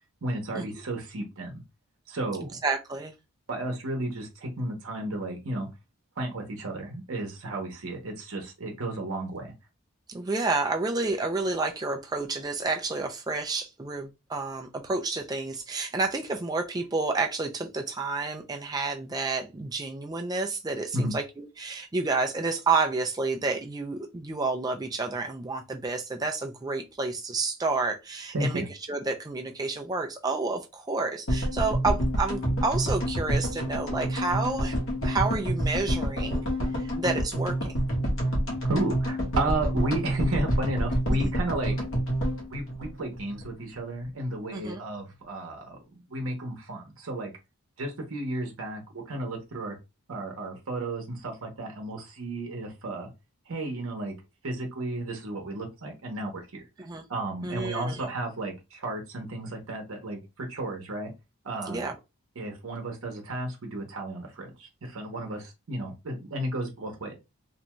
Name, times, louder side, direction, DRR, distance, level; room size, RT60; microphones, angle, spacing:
voice 1, 0.2-1.6 2.1-2.5 3.5-5.7 6.2-9.5 20.9-21.1 28.3-28.6 38.6-41.7 42.5-47.3 47.8-49.8 50.1-53.1 53.5-54.1 54.4-61.1 61.4-61.9 62.4-67.1, right 1 dB, 75° right, 0.8 m, -33 dB
voice 2, 2.4-3.1 10.1-28.6 28.9-34.8 35.0-36.4 36.8-37.7 41.2-41.3 44.5-44.8 56.8-57.0 57.4-58.0 61.7-61.9, right 3 dB, 15° right, 0.3 m, -30 dB
sound 1, 31.3-43.5 43.7-43.8 44.0-44.1, equal, 65° left, 1.0 m, -28 dB
2.5 x 2.2 x 2.9 m
head